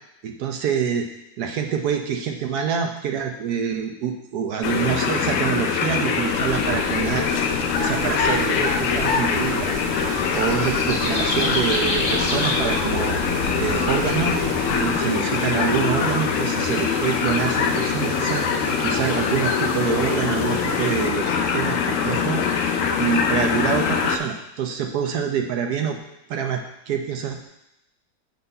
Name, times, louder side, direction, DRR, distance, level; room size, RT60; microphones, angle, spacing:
voice 1, 0.2-1.1 1.4-9.7 10.0-13.1 13.6-14.3 14.8-26.0 26.3-27.5, right 7 dB, 65° right, 4 dB, 1.2 m, -26 dB
sound 1, 4.6-24.2, left 6 dB, 75° left, 0.7 m, -23 dB
sound 2, 6.3-15.0, left 2 dB, 45° left, 1.3 m, -30 dB
sound 3, 7.7-21.1, right 9 dB, 85° right, 1.3 m, -37 dB
6.8 x 4.0 x 5.5 m, 0.87 s
omnidirectional pair, 2.0 m